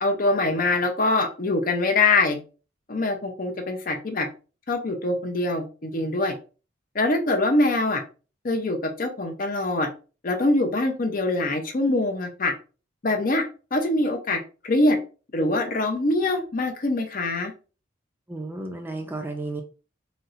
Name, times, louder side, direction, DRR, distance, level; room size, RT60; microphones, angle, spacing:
voice 1, 0.0-2.4 2.9-4.3 4.7-6.4 6.9-8.0 8.4-9.9 10.2-12.5 13.0-13.4 13.7-15.0 15.3-17.5, left 2 dB, 45° left, 4 dB, 0.6 m, -23 dB
voice 2, 18.3-19.6, right 2 dB, 10° right, 4 dB, 0.5 m, -33 dB
4.1 x 2.0 x 2.5 m, 0.34 s
head